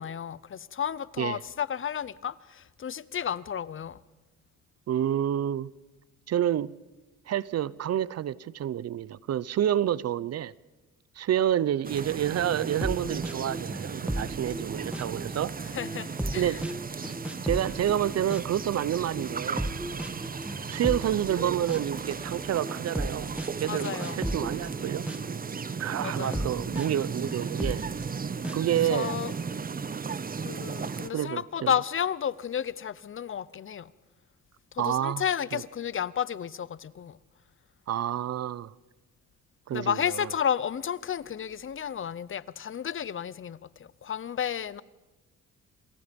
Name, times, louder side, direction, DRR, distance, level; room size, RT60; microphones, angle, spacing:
voice 1, 0.0-4.0 15.6-16.6 23.7-24.2 26.0-26.5 28.8-29.3 30.4-33.9 34.7-37.2 39.7-44.8, left 8 dB, 45° left, 0.8 m, -32 dB
voice 2, 4.9-5.7 6.3-6.8 7.3-10.5 11.2-15.5 16.4-16.6 17.4-19.7 20.7-23.3 23.6-25.1 25.8-27.8 28.5-29.1 31.1-31.7 34.8-35.2 35.5-35.6 37.9-38.7 39.7-40.3, right 11 dB, 55° right, 0.7 m, -29 dB
sound 1, 11.8-31.1, right 5 dB, 30° right, 1.0 m, -35 dB
sound 2, 12.0-25.5 25.9-28.8, right 1 dB, 5° right, 1.7 m, -37 dB
28.0 x 27.5 x 5.3 m
cardioid pair, 90°, 30 cm